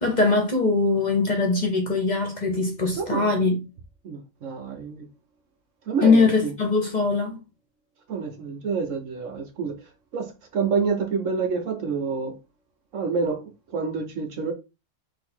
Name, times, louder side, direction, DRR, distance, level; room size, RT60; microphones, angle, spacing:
voice 1, 0.0-3.6 6.0-7.4, left 3 dB, 35° left, 0.9 m, -21 dB
voice 2, 3.0-3.3 4.0-5.1 5.9-6.5 8.1-9.7 10.1-12.4 12.9-14.5, right 5 dB, 65° right, 1.2 m, -28 dB
4.0 x 2.8 x 4.3 m
omnidirectional pair, 1.5 m